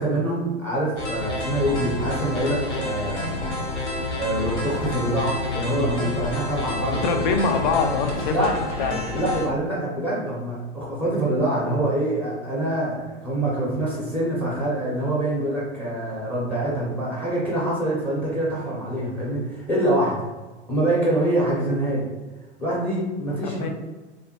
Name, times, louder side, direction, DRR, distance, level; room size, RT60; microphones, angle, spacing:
voice 1, 0.0-3.5 4.2-7.2 8.3-8.5 9.1-20.3 20.7-22.1 22.6-23.7, right 1 dB, 5° left, -5 dB, 0.8 m, -25 dB
sound 1, 1.0-9.5, left 2 dB, 80° left, 0.8 m, -29 dB
voice 2, 6.9-8.5 8.8-9.0 23.4-23.7, left 5 dB, 45° left, 5 dB, 0.5 m, -24 dB
3.4 x 2.1 x 2.9 m, 1.2 s
figure-of-eight pair, 95°, 34 cm